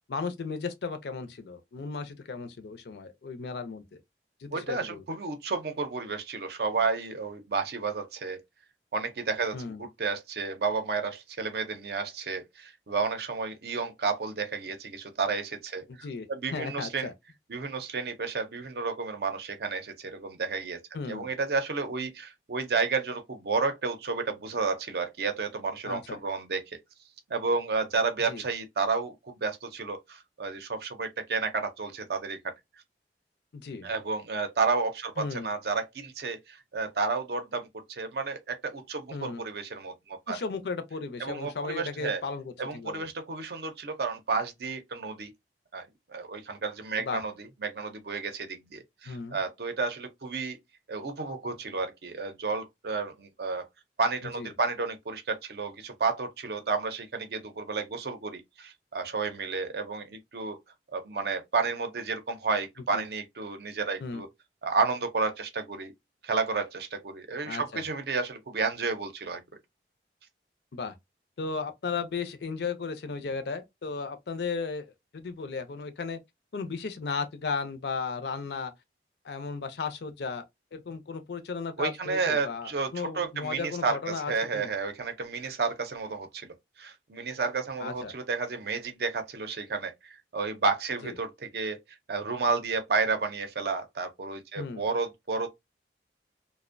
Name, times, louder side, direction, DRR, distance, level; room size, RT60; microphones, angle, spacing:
voice 1, 0.1-4.0 4.4-5.0 9.5-9.8 15.9-17.1 20.9-21.3 25.8-26.2 28.3-28.4 33.5-33.9 35.2-35.5 39.1-39.5 40.3-43.1 47.0-47.2 49.1-49.4 54.4-54.5 62.9-63.1 64.0-64.2 67.4-67.8 70.7-70.9 71.4-76.2 76.5-78.7 79.2-80.4 80.7-84.7 87.8-88.1 91.0-91.1 94.6-94.9, left 4 dB, 65° left, 0.4 m, -35 dB
voice 2, 4.5-8.4 8.9-17.1 17.5-20.8 21.1-26.8 27.3-32.5 33.8-40.4 41.2-42.2 42.6-45.3 45.7-50.6 50.9-53.7 54.0-60.6 60.9-64.3 64.6-65.9 66.2-69.4 81.8-91.8 92.1-95.5, right 4 dB, 60° right, 0.5 m, -31 dB
2.5 x 2.0 x 2.5 m
head